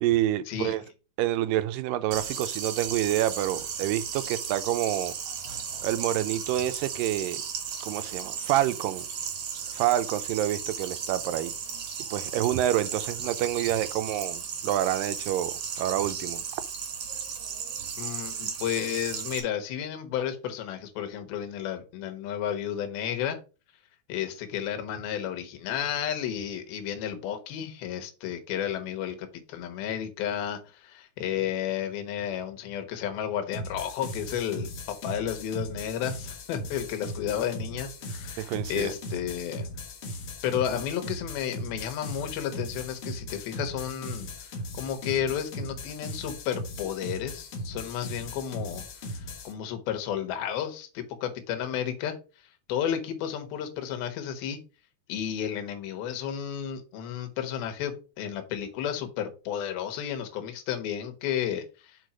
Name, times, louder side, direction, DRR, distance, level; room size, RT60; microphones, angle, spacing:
voice 1, 0.0-0.8 1.2-5.2 5.8-7.4 7.8-9.1 9.7-11.5 12.1-16.4 38.4-38.9, right 13 dB, 80° right, 2.1 m, -27 dB
sound 1, 2.1-19.4, right 7 dB, 60° right, 1.7 m, -35 dB
voice 2, 18.0-23.4 24.1-39.7 40.4-52.2 52.7-54.6 55.1-62.0, left 9 dB, 75° left, 3.0 m, -32 dB
sound 2, 33.5-49.5, left 1 dB, 60° left, 1.6 m, -38 dB
6.6 x 4.3 x 5.0 m
omnidirectional pair, 4.4 m